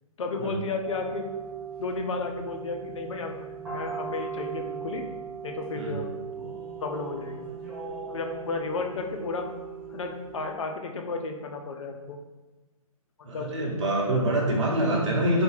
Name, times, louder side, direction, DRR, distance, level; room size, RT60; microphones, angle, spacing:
voice 1, 0.2-1.3 1.8-3.5 3.7-5.1 5.4-6.1 6.4-6.5 6.8-7.5 8.1-9.5 9.9-12.2 13.2-13.5, left 3 dB, 55° left, 4 dB, 0.5 m, -33 dB
sound 1, 0.8-10.5, right 6 dB, 5° right, 0.4 m, -38 dB
voice 2, 13.2-15.4, right 1 dB, 50° right, -3 dB, 0.9 m, -25 dB
3.3 x 2.3 x 3.2 m, 1.2 s
figure-of-eight pair, 135°, 19 cm